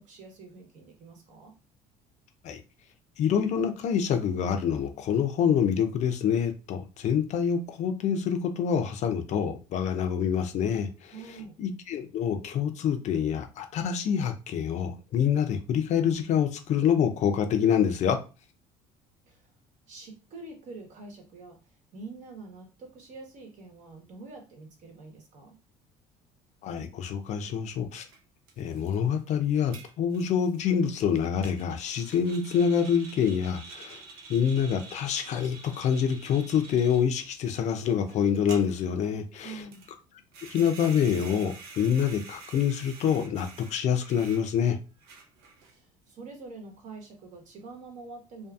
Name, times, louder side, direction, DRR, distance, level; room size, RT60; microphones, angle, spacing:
voice 1, 0.0-1.5 11.1-11.6 19.3-19.5 19.9-21.6 21.9-25.5 39.4-39.9 45.6-48.5, right 3 dB, 60° right, 1.0 m, -45 dB
voice 2, 3.2-11.1 11.6-18.2 26.6-28.1 28.6-34.0 34.3-39.6 40.5-44.8, left 8 dB, 55° left, 0.5 m, -26 dB
sound 1, 28.1-28.2 28.5-37.0 37.5-38.2 38.5-39.0 39.7-39.9 40.3-44.6 45.0-45.8, right 4 dB, 85° right, 0.6 m, -48 dB
2.6 x 2.5 x 2.3 m
cardioid pair, 105°, 15 cm